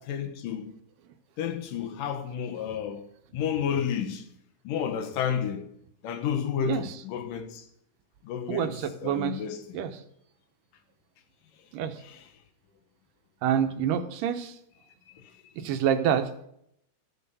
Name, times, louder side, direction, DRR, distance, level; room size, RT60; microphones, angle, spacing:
voice 1, 0.1-0.7 1.4-3.0 3.3-4.3 4.6-5.7 6.0-7.7 8.2-8.7 9.0-9.8 12.0-12.3 15.1-15.5, left 8 dB, 90° left, 2.9 m, -31 dB
voice 2, 8.5-9.4 9.7-9.9 11.7-12.0 13.4-14.6 15.6-16.5, right 9 dB, 85° right, 2.5 m, -27 dB
13.0 x 7.0 x 6.8 m
omnidirectional pair, 3.7 m